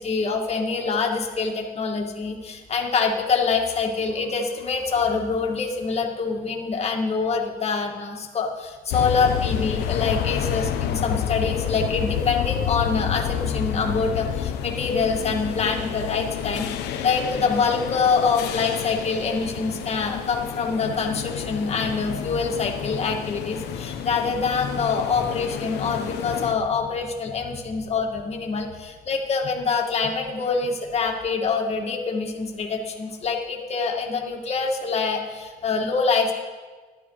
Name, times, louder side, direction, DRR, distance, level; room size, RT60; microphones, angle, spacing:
voice 1, 0.0-36.3, left 5 dB, 40° left, 1 dB, 2.2 m, -25 dB
sound 1, 8.9-26.5, left 9 dB, 85° left, 1.1 m, -29 dB
14.5 x 12.0 x 4.9 m, 1.4 s
cardioid pair, 110°, 17 cm